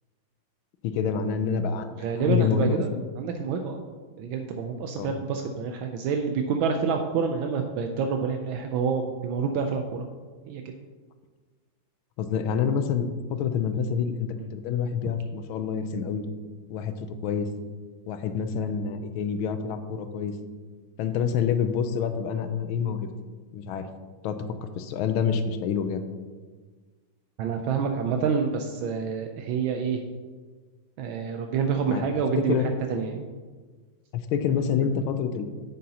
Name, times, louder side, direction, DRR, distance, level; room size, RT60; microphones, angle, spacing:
voice 1, 0.8-3.0 4.9-5.2 12.2-16.2 16.7-17.5 18.1-20.3 21.0-23.1 23.5-23.9 24.2-24.4 24.8-26.0 31.9-32.0 32.4-32.8 34.1-35.4, left 7 dB, 90° left, 9 dB, 1.5 m, -27 dB
voice 2, 2.0-3.8 4.2-10.1 10.5-10.6 27.4-30.0 31.0-32.6 32.9-33.3, right 6 dB, 80° right, 4 dB, 1.4 m, -27 dB
9.3 x 7.7 x 2.9 m, 1.4 s
omnidirectional pair, 2.2 m